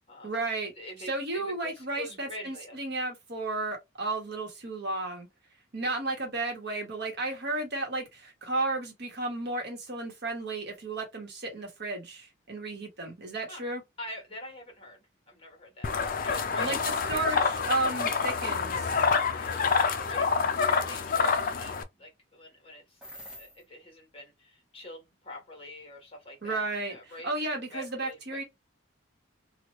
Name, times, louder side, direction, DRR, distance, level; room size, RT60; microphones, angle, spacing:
voice 1, 0.2-0.7 1.1-5.3 5.7-13.8 16.6-16.8 17.1-17.4 17.7-19.0 26.4-27.0 27.2-28.4, right 2 dB, 55° right, 1.2 m, -33 dB
voice 2, 0.7-2.8 13.5-13.6 14.0-17.5 18.0-18.1 19.3-23.0 23.4-27.3 27.7-28.4, left 1 dB, 30° left, 1.4 m, -45 dB
sound 1, 15.8-21.8, left 5 dB, 45° left, 0.4 m, -27 dB
sound 2, 19.3-19.4 19.9-20.2 23.0-23.6, equal, 5° right, 1.0 m, -47 dB
3.1 x 2.4 x 3.0 m
head